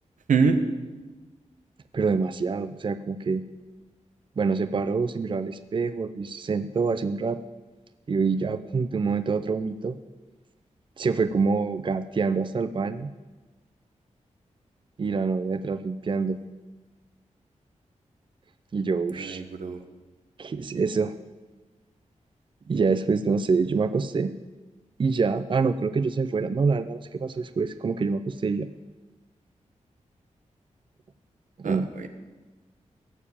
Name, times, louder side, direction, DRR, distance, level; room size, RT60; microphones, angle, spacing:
voice 1, 0.3-0.6 19.2-19.8 31.6-32.1, right 5 dB, 85° right, 7 dB, 1.4 m, -24 dB
voice 2, 1.9-3.4 4.4-7.4 8.1-10.0 11.0-13.1 15.0-16.4 18.7-19.4 20.4-21.1 22.7-24.3 25.0-28.7 31.6-31.9, right 4 dB, 40° right, 11 dB, 0.6 m, -26 dB
17.0 x 7.1 x 8.7 m, 1.2 s
wide cardioid pair, 100°, 13 cm